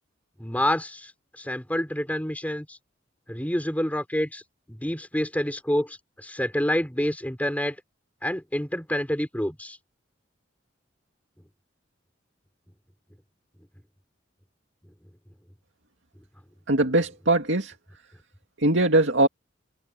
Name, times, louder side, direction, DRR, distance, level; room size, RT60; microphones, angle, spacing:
voice 1, 0.4-1.1 1.4-2.8 3.3-4.4 4.7-7.8 8.2-9.8, equal, 10° left, 3.7 m, -28 dB
voice 2, 16.7-17.7 18.6-19.3, right 2 dB, 70° right, 2.4 m, -21 dB
head